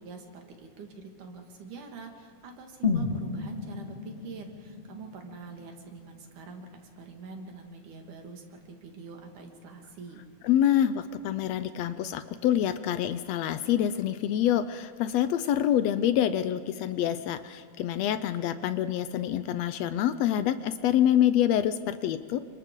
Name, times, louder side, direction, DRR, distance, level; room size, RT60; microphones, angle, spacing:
voice 1, 0.0-6.7 7.0-10.2, right 4 dB, 85° right, 3 dB, 3.4 m, -45 dB
sound 1, 2.8-6.8 7.1-7.2, left 4 dB, 40° left, 0.9 m, -33 dB
voice 2, 10.4-22.4, left 11 dB, 75° left, 12 dB, 1.6 m, -26 dB
29.5 x 25.5 x 3.8 m, 2.2 s
omnidirectional pair, 3.5 m